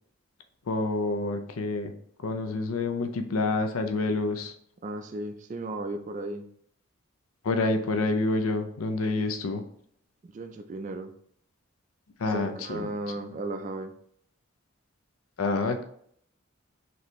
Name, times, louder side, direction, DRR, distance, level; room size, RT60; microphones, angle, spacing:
voice 1, 0.7-1.9 2.2-4.5 7.4-9.6 12.2-12.9 15.4-15.8, left 3 dB, 85° left, 6 dB, 0.5 m, -28 dB
voice 2, 4.8-6.5 10.2-11.1 12.3-13.9, right 2 dB, 35° right, 6 dB, 0.3 m, -35 dB
4.2 x 3.3 x 3.0 m, 0.64 s
head